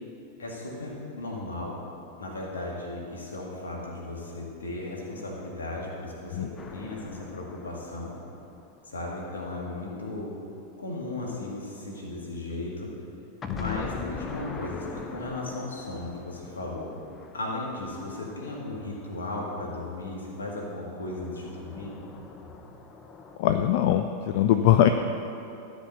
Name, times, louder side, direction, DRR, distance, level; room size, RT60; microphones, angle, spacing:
voice 1, 0.4-1.8 2.2-8.1 8.9-10.3 10.8-12.9 13.5-16.9 17.3-22.0, left 2 dB, 70° left, -2 dB, 2.0 m, -36 dB
sound 1, 6.6-9.4 13.4-19.7 20.9-23.4, left 4 dB, 20° left, 0.7 m, -43 dB
voice 2, 23.4-24.9, left 11 dB, 50° left, 8 dB, 0.3 m, -22 dB
12.5 x 5.1 x 6.7 m, 2.9 s
figure-of-eight pair, 90°, 0 cm